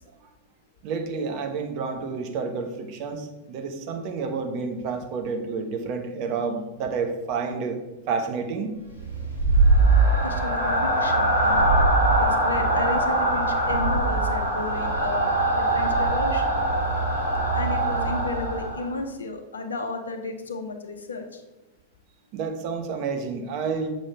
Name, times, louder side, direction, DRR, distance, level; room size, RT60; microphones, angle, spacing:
voice 1, 0.8-7.8 8.1-8.8 22.3-23.9, right 5 dB, 45° right, 5 dB, 1.1 m, -29 dB
sound 1, 8.9-18.9, right 2 dB, 80° right, 2.3 m, -22 dB
voice 2, 10.2-11.7 12.2-16.6 17.5-21.4, left 3 dB, 70° left, 6 dB, 0.9 m, -33 dB
7.5 x 5.2 x 4.9 m, 1.0 s
figure-of-eight pair, 90°, 0 cm